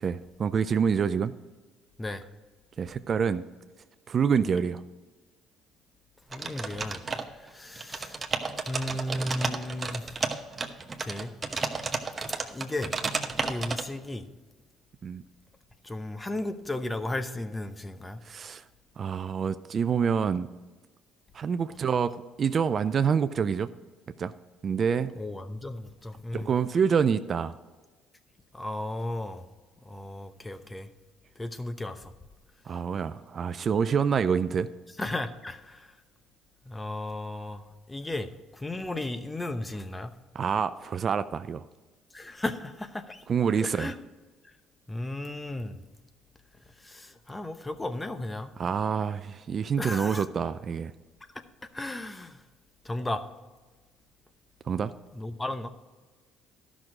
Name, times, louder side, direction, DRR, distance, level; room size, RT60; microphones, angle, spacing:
voice 1, 0.0-1.3 2.8-3.4 4.1-4.8 15.0-15.2 18.2-18.6 19.0-20.5 21.3-23.7 24.2-24.3 24.6-25.1 26.3-27.5 32.7-34.7 40.3-41.7 43.3-43.9 48.6-50.9 54.7-54.9, right 6 dB, 45° right, 12 dB, 0.4 m, -27 dB
voice 2, 6.3-7.0 7.3-8.2 8.7-10.1 11.0-11.3 12.5-12.9 13.4-14.3 15.8-18.2 25.2-26.5 28.5-29.5 29.8-30.9 31.4-32.1 35.0-35.9 36.6-40.1 42.1-43.2 43.6-43.9 44.9-45.8 46.8-48.5 49.8-50.2 51.7-52.4 52.8-53.2 55.1-55.7, left 1 dB, 15° left, 10 dB, 0.9 m, -35 dB
sound 1, 6.3-7.5 7.8-13.8, right 4 dB, 30° right, 1.0 m, -32 dB
12.0 x 6.2 x 4.9 m, 1.3 s
supercardioid pair, 80°, 0 cm